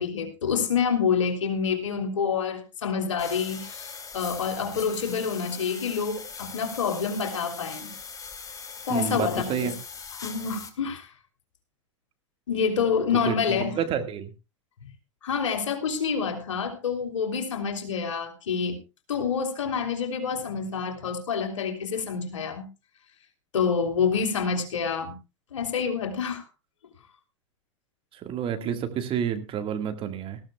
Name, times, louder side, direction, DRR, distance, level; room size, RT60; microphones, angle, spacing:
voice 1, 0.0-7.9 8.9-9.7 10.2-11.1 12.5-13.7 15.2-18.8 19.1-22.7 23.5-25.2 25.5-26.4 28.6-28.7, left 6 dB, 75° left, 6 dB, 3.0 m, -27 dB
sound 1, 3.2-10.7, left 5 dB, 20° left, 2.2 m, -40 dB
voice 2, 8.9-9.8 13.3-13.4 13.7-14.3 28.1-30.4, right 8 dB, 35° right, 7 dB, 1.8 m, -29 dB
19.0 x 14.5 x 2.3 m, 0.28 s
figure-of-eight pair, 90°, 16 cm